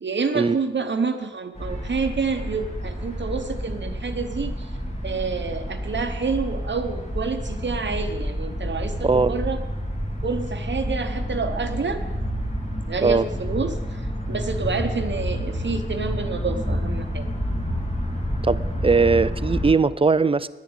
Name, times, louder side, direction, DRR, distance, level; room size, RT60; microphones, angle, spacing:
voice 1, 0.0-4.7 5.0-9.6 10.2-12.0 12.9-14.0 14.3-17.3, right 4 dB, 60° right, 5 dB, 0.9 m, -28 dB
sound 1, 1.5-19.7, equal, 35° left, 3.0 m, -29 dB
voice 2, 18.5-20.5, right 4 dB, 25° right, 16 dB, 0.4 m, -19 dB
11.0 x 10.0 x 8.7 m, 1.2 s
wide cardioid pair, 110°, 21 cm